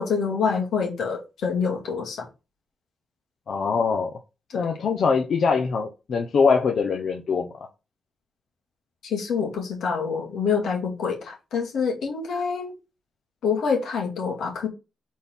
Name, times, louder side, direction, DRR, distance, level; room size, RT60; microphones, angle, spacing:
voice 1, 0.0-2.3 4.5-4.7 9.0-12.7 13.4-14.7, left 5 dB, 85° left, 2.3 m, -26 dB
voice 2, 3.5-4.1 4.5-7.5, left 5 dB, 60° left, 0.8 m, -23 dB
4.2 x 4.2 x 5.4 m
cardioid pair, 115°, 0 cm